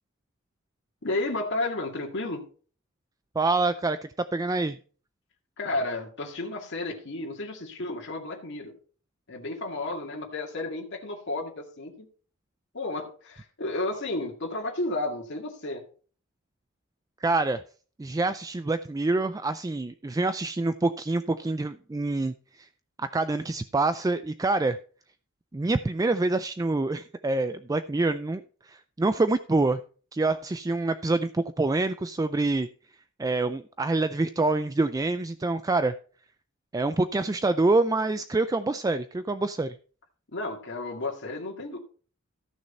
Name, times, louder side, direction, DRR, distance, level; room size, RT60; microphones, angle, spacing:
voice 1, 1.0-2.4 5.6-8.7 9.3-12.1 12.7-15.8 40.3-41.8, left 2 dB, 60° left, -1 dB, 2.1 m, -32 dB
voice 2, 3.4-4.8 17.2-17.6 18.0-22.7 23.0-24.8 25.5-29.8 30.1-32.7 33.2-35.9 36.7-39.8, right 2 dB, 15° right, 12 dB, 0.4 m, -26 dB
14.0 x 6.4 x 4.3 m, 0.41 s
head